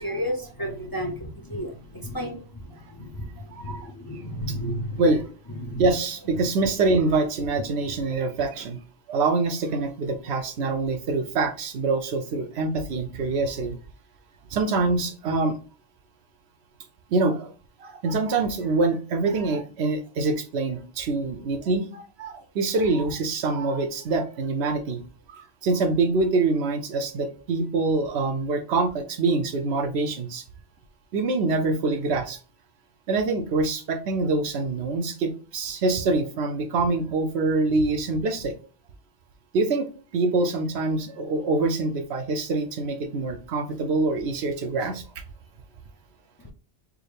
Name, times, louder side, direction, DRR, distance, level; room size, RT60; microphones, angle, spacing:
voice 1, 0.0-5.0 5.5-5.8, equal, 30° left, 1 dB, 0.5 m, -33 dB
voice 2, 3.5-3.9 4.5-4.6 5.0-5.2 5.8-8.8 9.1-13.8 14.5-15.6 17.1-17.5 17.8-25.0 25.3-30.4 31.1-32.4 33.1-38.5 39.5-45.0, right 3 dB, 80° right, 7 dB, 0.9 m, -25 dB
4.8 x 2.1 x 3.2 m, 0.37 s
omnidirectional pair, 1.1 m